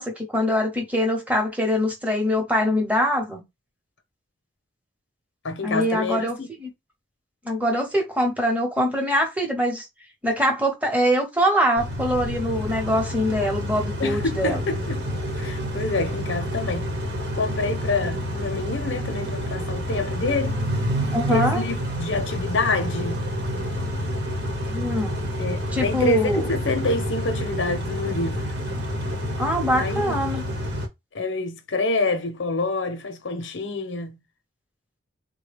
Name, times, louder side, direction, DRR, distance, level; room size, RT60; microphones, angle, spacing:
voice 1, 0.0-3.4 5.6-6.3 6.6-6.7 7.4-9.9 10.2-14.6 21.1-21.6 24.7-25.1 25.7-26.5 29.4-30.4, equal, 10° right, 0.9 m, -23 dB
voice 2, 5.4-6.5 14.0-15.1 15.3-16.9 17.3-20.6 21.3-23.3 25.4-28.4 29.8-30.2 31.1-34.2, left 3 dB, 80° left, 0.7 m, -27 dB
Car / Idling / Accelerating revving vroom, 11.8-30.9, equal, 60° right, 1.0 m, -28 dB
3.7 x 2.2 x 3.3 m
head